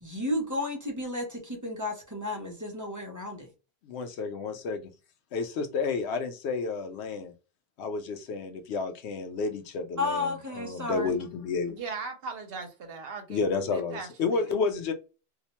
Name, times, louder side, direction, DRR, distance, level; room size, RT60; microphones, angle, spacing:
voice 1, 0.0-3.5 10.0-11.2, left 2 dB, 20° right, 0.6 m, -32 dB
voice 2, 3.8-4.8 5.3-7.3 7.8-11.7 13.3-14.9, left 4 dB, 90° left, 0.9 m, -31 dB
voice 3, 11.7-14.5, right 4 dB, 70° right, 0.8 m, -39 dB
2.5 x 2.1 x 2.9 m
omnidirectional pair, 1.1 m